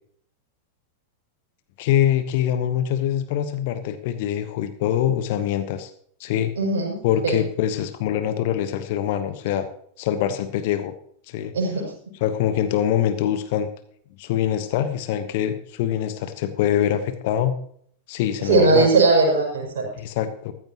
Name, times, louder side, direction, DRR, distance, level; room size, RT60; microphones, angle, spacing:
voice 1, 1.8-5.9 6.2-6.5 7.0-9.7 10.0-10.9 11.3-11.5 12.2-13.7 14.2-17.6 18.1-18.9 20.0-20.5, left 10 dB, 50° left, 11 dB, 1.1 m, -24 dB
voice 2, 6.6-7.4 11.5-11.9 18.4-19.8, right 3 dB, 60° right, -2 dB, 5.8 m, -19 dB
14.5 x 14.0 x 3.0 m, 0.62 s
figure-of-eight pair, 90°, 0 cm